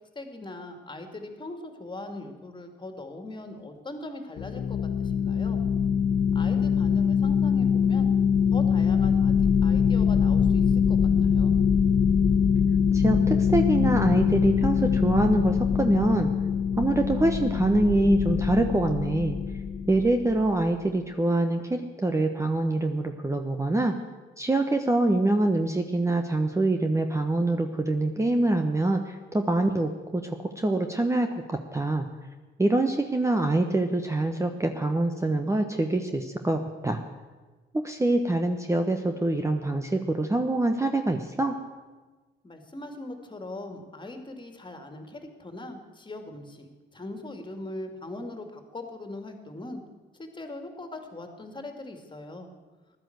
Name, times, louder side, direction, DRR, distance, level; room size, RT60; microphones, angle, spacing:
voice 1, 0.1-5.6 6.3-8.1 8.5-11.5 42.4-49.8 50.2-52.5, left 2 dB, 25° left, 5 dB, 2.5 m, -40 dB
sound 1, 4.4-20.6, left 7 dB, 70° left, 1.4 m, -23 dB
voice 2, 12.9-16.3 16.8-19.4 19.9-23.9 24.4-32.1 32.6-37.0 37.7-41.5, right 2 dB, 15° right, 5 dB, 1.1 m, -25 dB
15.5 x 11.5 x 8.0 m, 1.3 s
cardioid pair, 90°, 20 cm